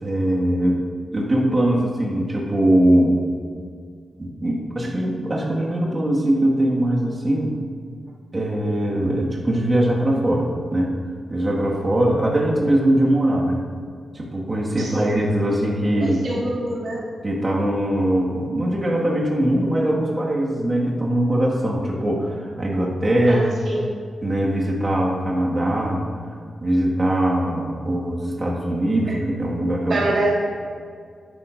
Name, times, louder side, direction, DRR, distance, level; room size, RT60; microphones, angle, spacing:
voice 1, 0.0-0.8 1.1-3.1 4.2-7.5 8.3-10.9 11.3-13.6 14.1-16.2 17.2-23.6 24.2-26.0 26.6-30.1, right 1 dB, 30° right, -4 dB, 1.7 m, -21 dB
voice 2, 14.8-15.2 16.0-17.0 23.3-23.8 29.1-29.2 29.9-30.3, right 2 dB, 70° right, -7 dB, 2.3 m, -25 dB
13.5 x 10.5 x 2.6 m, 2.1 s
wide cardioid pair, 110°, 0 cm